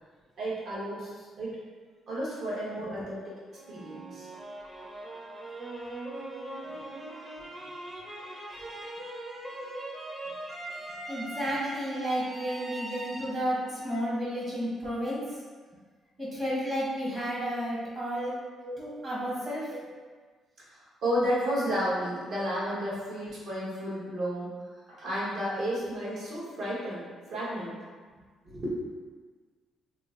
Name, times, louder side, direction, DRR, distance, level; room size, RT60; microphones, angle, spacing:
voice 1, 0.4-1.6 2.1-4.3 6.6-6.8 12.5-13.0 18.6-18.7 20.6-24.5 24.9-27.7 28.4-28.8, equal, 65° right, -7 dB, 1.2 m, -32 dB
sound 1, 3.5-14.6, right 1 dB, 20° right, 0.7 m, -41 dB
voice 2, 11.1-15.2 16.2-18.3 18.8-19.7, equal, 40° right, -7 dB, 1.1 m, -32 dB
2.9 x 2.1 x 3.7 m, 1.5 s
cardioid pair, 90°, 0 cm